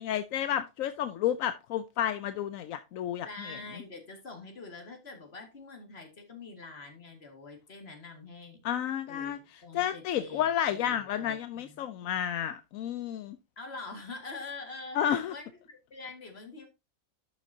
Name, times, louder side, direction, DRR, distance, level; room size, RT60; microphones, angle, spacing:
voice 1, 0.0-3.6 8.6-9.4 9.7-13.4 14.9-15.3, left 10 dB, 85° left, 1.0 m, -31 dB
voice 2, 3.2-8.6 9.1-11.9 13.6-16.7, left 3 dB, 50° left, 2.3 m, -45 dB
11.5 x 6.3 x 2.7 m
omnidirectional pair, 1.4 m